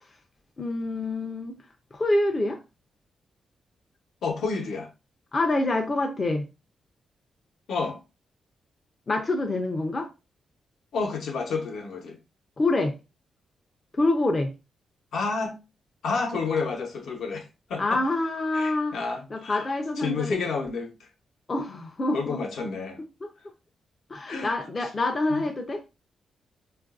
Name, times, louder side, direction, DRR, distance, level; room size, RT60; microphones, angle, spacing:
voice 1, 0.6-1.6 1.9-2.6 5.3-6.4 9.1-10.1 12.6-12.9 13.9-14.5 17.8-18.9 19.3-20.4 21.5-22.4 24.1-25.8, left 2 dB, 25° left, 0.4 m, -26 dB
voice 2, 4.2-4.9 7.7-8.0 10.9-12.2 15.1-15.6 16.0-18.0 18.5-19.7 20.0-21.1 22.1-23.0 24.3-24.5 25.3-25.4, left 4 dB, 70° left, 0.8 m, -30 dB
4.5 x 2.4 x 2.4 m
wide cardioid pair, 175°, 0 cm